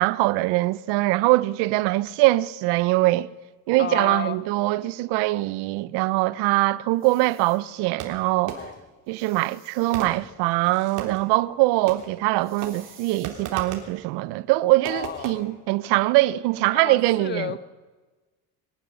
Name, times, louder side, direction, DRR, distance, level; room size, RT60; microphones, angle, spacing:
voice 1, 0.0-3.3 3.7-8.6 9.1-17.5, right 19 dB, 85° right, 0.8 m, -22 dB
voice 2, 3.8-4.4 8.5-8.8 14.9-15.4 16.7-17.6, left 7 dB, 25° left, 1.1 m, -32 dB
sound 1, 6.9-7.6 9.1-10.1 12.4-13.3, right 6 dB, 30° right, 4.5 m, -52 dB
Fireworks, 8.0-8.9 9.9-11.3 11.9-12.3 12.6-14.0 14.8-15.3, right 7 dB, 50° right, 3.3 m, -37 dB
22.0 x 13.0 x 9.9 m
cardioid pair, 155°, 40 cm